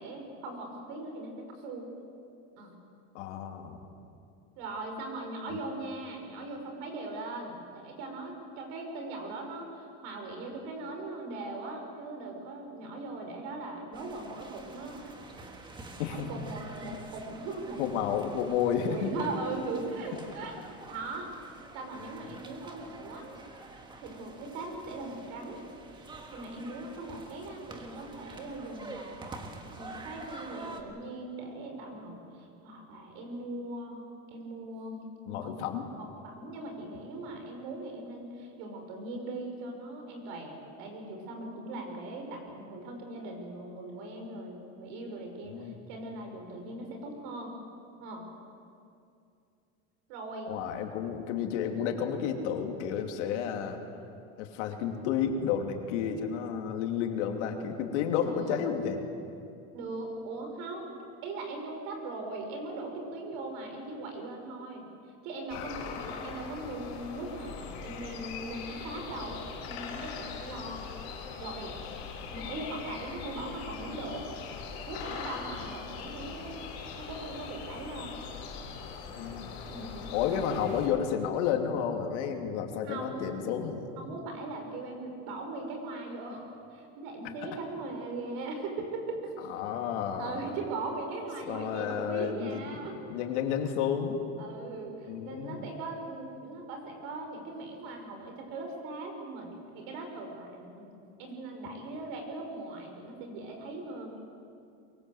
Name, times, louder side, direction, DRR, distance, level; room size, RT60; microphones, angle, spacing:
voice 1, 0.0-1.9 2.6-2.8 4.6-15.1 16.1-18.2 18.7-20.6 20.9-21.3 21.7-23.2 24.0-25.6 25.9-34.0 34.3-35.6 36.0-47.6 48.0-48.3 50.1-50.5 58.2-58.6 59.7-61.0 61.2-64.9 65.2-65.8 66.2-70.9 71.4-71.8 72.3-74.2 74.9-76.6 77.0-78.2 79.7-80.5 82.8-83.3 84.0-89.3 90.2-93.0 94.4-100.9 101.2-104.2, right 2 dB, 60° right, 3 dB, 5.7 m, -40 dB
voice 2, 3.1-3.8 5.5-5.6 16.0-16.3 17.8-19.1 22.3-22.4 35.3-35.8 45.4-45.8 50.5-53.8 54.4-59.0 65.6-65.7 79.2-79.5 80.1-84.0 89.5-90.3 91.5-92.8 93.1-94.2 95.1-95.6, left 8 dB, 85° left, 3 dB, 3.1 m, -31 dB
sound 1, 13.9-30.8, right 2 dB, 15° right, 1.6 m, -48 dB
sound 2, 65.5-80.9, left 5 dB, 65° left, 5.6 m, -41 dB
23.0 x 23.0 x 8.0 m, 2.5 s
cardioid pair, 170°, 34 cm